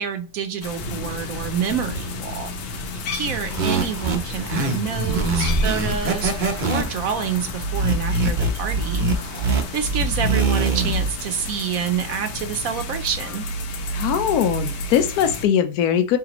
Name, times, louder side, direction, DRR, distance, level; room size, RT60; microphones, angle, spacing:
voice 1, 0.0-2.5 2.9-6.3 6.6-9.1 9.5-13.4, right 7 dB, 65° right, 0.9 m, -28 dB
sound 1, 0.6-15.5, left 2 dB, 85° left, 1.4 m, -33 dB
sound 2, 0.7-11.7, equal, 40° left, 0.8 m, -34 dB
sound 3, 3.4-11.1, right 3 dB, 45° right, 0.6 m, -23 dB
voice 2, 13.9-16.2, left 9 dB, 70° left, 1.1 m, -20 dB
4.8 x 3.4 x 2.9 m
omnidirectional pair, 1.8 m